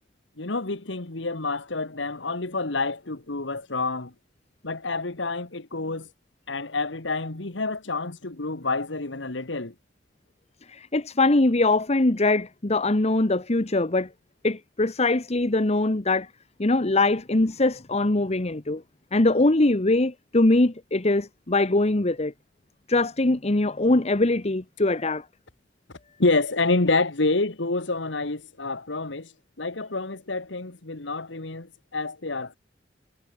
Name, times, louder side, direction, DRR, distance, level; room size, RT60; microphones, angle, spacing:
voice 1, 0.4-4.1 4.6-6.1 6.5-9.7 26.2-29.3 29.6-32.6, left 3 dB, 75° left, 1.8 m, -28 dB
voice 2, 10.7-14.1 14.4-16.3 16.6-18.8 19.1-22.3 22.9-25.2, left 2 dB, 35° left, 1.2 m, -22 dB
head